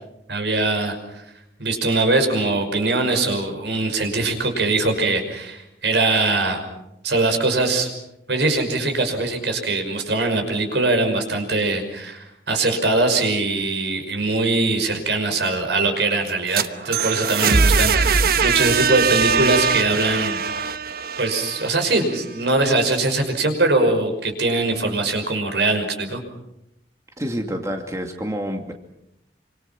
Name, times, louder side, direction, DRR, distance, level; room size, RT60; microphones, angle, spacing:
voice 1, 0.3-1.2 1.6-6.6 7.0-7.9 8.3-20.4 21.2-26.2, right 2 dB, 75° right, 6 dB, 5.7 m, -22 dB
sound 1, 16.3-22.2, right 5 dB, 60° right, 1.1 m, -21 dB
voice 2, 27.2-28.7, equal, 20° right, 3 dB, 2.5 m, -28 dB
28.0 x 26.0 x 6.0 m, 0.83 s
head